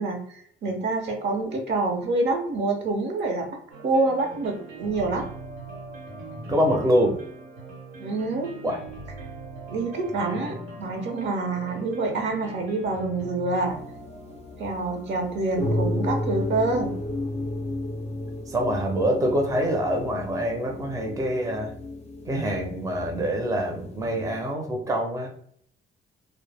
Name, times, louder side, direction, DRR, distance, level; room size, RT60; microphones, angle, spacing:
voice 1, 0.0-3.5 3.8-5.3 8.0-8.5 9.7-13.8 14.6-16.9, right 3 dB, 65° right, 3 dB, 0.7 m, -27 dB
sound 1, 3.7-16.6, right 2 dB, 90° right, 1.0 m, -42 dB
voice 2, 6.5-7.2 8.6-8.8 18.5-21.7 22.3-25.3, equal, 15° right, 1 dB, 0.5 m, -25 dB
sound 2, 13.7-24.5, left 1 dB, 35° left, 0.5 m, -33 dB
2.0 x 2.0 x 3.3 m, 0.64 s
cardioid pair, 90°, 20 cm